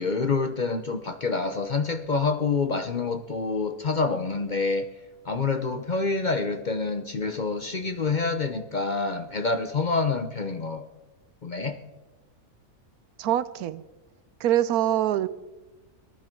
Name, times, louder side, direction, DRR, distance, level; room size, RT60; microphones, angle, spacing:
voice 1, 0.0-4.9 5.2-10.9 11.4-11.8, left 4 dB, 40° left, 8 dB, 0.7 m, -27 dB
voice 2, 13.2-13.8 14.4-15.3, right 12 dB, 90° right, 16 dB, 1.2 m, -24 dB
18.5 x 12.0 x 4.5 m, 1.1 s
omnidirectional pair, 1.5 m